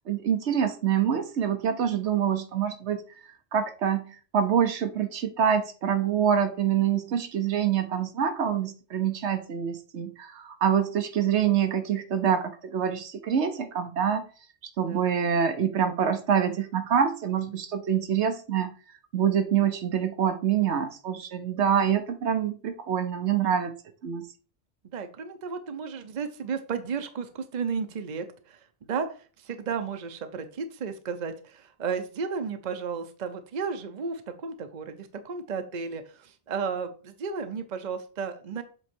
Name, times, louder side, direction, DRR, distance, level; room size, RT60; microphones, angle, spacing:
voice 1, 0.1-3.0 3.5-14.3 14.8-18.7 19.1-23.7 24.0-24.2, right 8 dB, 80° right, 8 dB, 1.1 m, -26 dB
voice 2, 24.9-28.6 28.9-29.1 29.4-38.6, right 5 dB, 45° right, 8 dB, 0.8 m, -33 dB
7.8 x 3.1 x 4.5 m, 0.37 s
omnidirectional pair, 1.1 m